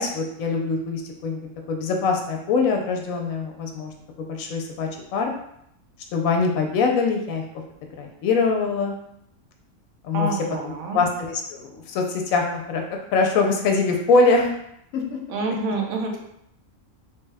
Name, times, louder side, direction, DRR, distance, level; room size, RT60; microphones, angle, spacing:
voice 1, 0.0-1.4 1.7-5.3 6.1-7.4 8.0-9.0 10.0-10.3 10.6-14.5 14.9-15.2, left 4 dB, 85° left, 2 dB, 1.0 m, -23 dB
voice 2, 10.1-11.0 15.3-16.2, right 3 dB, 90° right, 1 dB, 1.1 m, -27 dB
3.1 x 2.2 x 3.3 m, 0.75 s
omnidirectional pair, 1.4 m